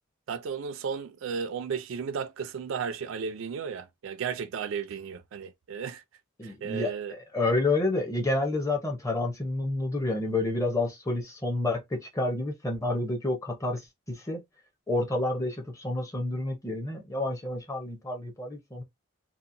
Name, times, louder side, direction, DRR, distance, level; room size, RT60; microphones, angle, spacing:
voice 1, 0.3-6.0 6.4-7.1, right 6 dB, 75° right, 0.3 m, -34 dB
voice 2, 6.4-14.4 14.9-18.8, left 2 dB, 15° left, 0.6 m, -29 dB
2.8 x 2.1 x 2.5 m
head